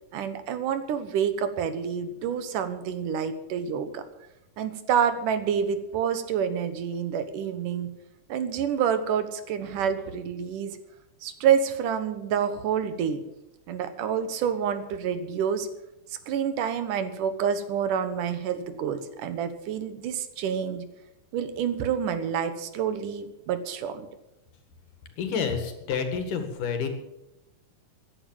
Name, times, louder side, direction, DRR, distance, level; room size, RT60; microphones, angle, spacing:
voice 1, 0.1-4.0 4.6-7.9 8.3-10.8 11.2-13.2 13.7-15.7 16.3-20.9 21.3-24.1, right 8 dB, 75° right, 10 dB, 2.7 m, -28 dB
voice 2, 25.2-26.9, left 6 dB, 75° left, 6 dB, 3.5 m, -29 dB
15.0 x 10.5 x 7.4 m, 0.91 s
omnidirectional pair, 3.8 m